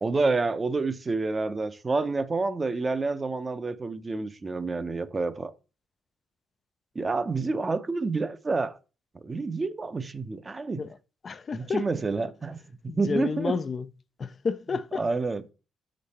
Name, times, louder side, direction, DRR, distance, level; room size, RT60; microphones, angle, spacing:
voice 1, 0.0-5.5 6.9-8.8 9.2-10.8 11.5-13.6 15.0-15.4, right 3 dB, 30° right, 0.6 m, -28 dB
voice 2, 11.2-11.9 12.9-13.9 14.2-15.0, left 5 dB, 40° left, 0.4 m, -30 dB
6.3 x 5.2 x 4.2 m
cardioid pair, 90°, 0 cm